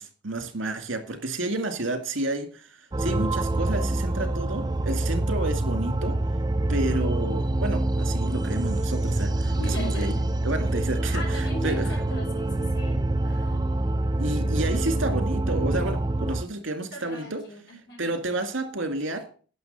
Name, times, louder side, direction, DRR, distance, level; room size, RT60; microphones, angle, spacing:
voice 1, 0.0-2.7 3.0-6.2 6.7-10.2 10.4-12.0 14.2-17.4 18.0-19.3, right 2 dB, 80° right, 2.1 m, -30 dB
sound 1, 2.9-16.4, right 2 dB, 20° right, 0.4 m, -26 dB
voice 2, 9.5-10.2 11.1-13.6 16.9-17.6 17.9-18.1, left 2 dB, 65° left, 5.7 m, -40 dB
11.0 x 6.2 x 6.7 m
head